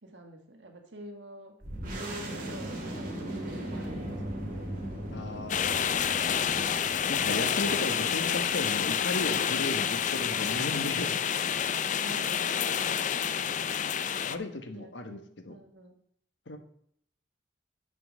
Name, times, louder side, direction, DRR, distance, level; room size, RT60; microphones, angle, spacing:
voice 1, 0.0-1.5 2.0-4.9 11.9-13.0 13.4-13.5 14.7-16.0, right 1 dB, 85° right, 3 dB, 1.6 m, -47 dB
sound 1, 1.6-10.8, right 1 dB, 50° right, 2.4 m, -39 dB
voice 2, 5.1-6.0 7.1-11.2 13.8-14.0 14.3-15.5 16.5-16.6, left 2 dB, 80° left, 7 dB, 1.2 m, -35 dB
sound 2, 5.5-14.4, left 8 dB, 45° left, 0.4 m, -28 dB
7.5 x 5.3 x 7.4 m, 0.68 s
head